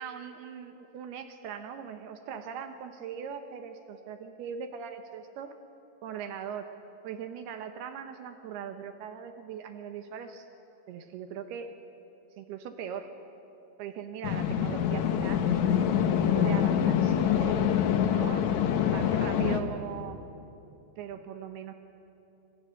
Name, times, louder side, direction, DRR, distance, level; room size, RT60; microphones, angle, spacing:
voice 1, 0.0-5.5 6.0-6.7 7.0-10.5 10.9-11.7 12.4-13.1 13.8-17.6 18.1-18.5 18.9-20.2 21.0-21.7, right 8 dB, 75° right, 7 dB, 2.8 m, -40 dB
sound 1, 14.2-19.6, left 9 dB, 80° left, 1.6 m, -25 dB
27.5 x 26.0 x 6.5 m, 2.8 s
omnidirectional pair, 5.0 m